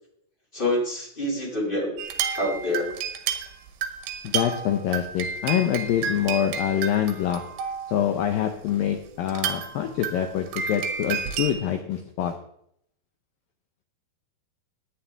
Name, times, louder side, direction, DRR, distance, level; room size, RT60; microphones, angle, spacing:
voice 1, 0.5-1.9 2.3-2.9, left 1 dB, 20° left, -2 dB, 1.7 m, -26 dB
sound 1, 2.0-8.0 8.7-8.8 9.3-11.5, right 7 dB, 85° right, 3.4 m, -31 dB
voice 2, 4.2-7.4 7.9-12.3, left 10 dB, 80° left, 6 dB, 2.0 m, -25 dB
16.5 x 9.9 x 3.4 m, 0.73 s
omnidirectional pair, 5.0 m